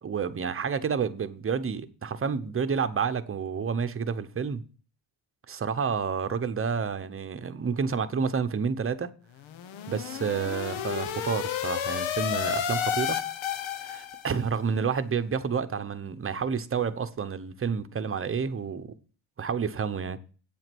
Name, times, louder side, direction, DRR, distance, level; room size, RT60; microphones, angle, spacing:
voice 1, 0.0-4.6 5.5-9.1 9.9-13.2 13.8-18.9 19.4-20.2, right 6 dB, 25° right, 0.9 m, -29 dB
sound 1, 9.4-14.4, left 9 dB, 70° left, 1.1 m, -31 dB
8.7 x 7.8 x 6.1 m
cardioid pair, 110°, 47 cm